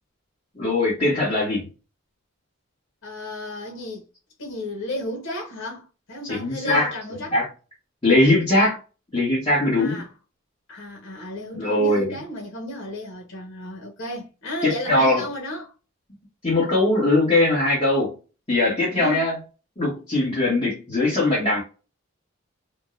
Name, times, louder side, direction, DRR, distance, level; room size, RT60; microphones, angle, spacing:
voice 1, 0.5-1.7 6.2-6.9 7.3-7.5 8.0-8.8 9.1-10.0 11.5-12.1 14.6-15.2 16.4-18.1 18.5-19.4 19.8-21.6, left 2 dB, 25° left, 1.2 m, -20 dB
voice 2, 3.0-4.1 4.4-7.3 9.7-10.1 10.7-15.7 18.9-19.3, left 1 dB, 75° left, 1.0 m, -33 dB
3.6 x 2.2 x 2.4 m
head